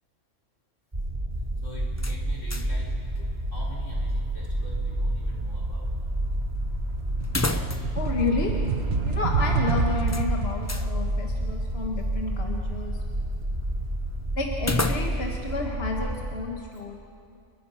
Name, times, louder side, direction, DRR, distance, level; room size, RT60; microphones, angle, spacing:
sound 1, 0.9-16.3, right 1 dB, 30° right, 3.2 m, -30 dB
voice 1, 1.6-3.0 3.5-5.9, left 1 dB, 85° left, -4 dB, 4.9 m, -43 dB
sound 2, 2.0-2.9 3.2-3.3 7.2-8.1 8.4-8.5 10.1-10.9 14.6-15.4, left 2 dB, 15° left, 0.7 m, -31 dB
sound 3, 5.1-5.3 5.6-14.5, right 4 dB, 60° right, 1.4 m, -30 dB
voice 2, 8.0-8.6 9.0-13.0 14.4-17.0, left 3 dB, 55° left, 0 dB, 2.0 m, -31 dB
29.5 x 21.5 x 5.8 m, 2.4 s
omnidirectional pair, 1.2 m